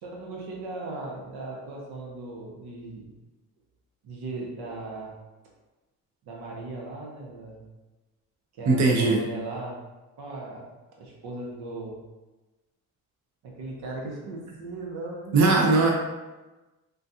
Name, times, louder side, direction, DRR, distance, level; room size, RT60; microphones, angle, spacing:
voice 1, 0.0-3.1 4.0-5.1 6.2-7.6 8.6-9.8 10.2-10.7 11.0-12.0 13.4-15.4, right 2 dB, 75° right, -2 dB, 1.0 m, -37 dB
voice 2, 8.6-9.3 15.3-15.9, right 3 dB, 50° right, -1 dB, 0.7 m, -19 dB
3.8 x 2.5 x 2.7 m, 1.1 s
cardioid pair, 80°, 38 cm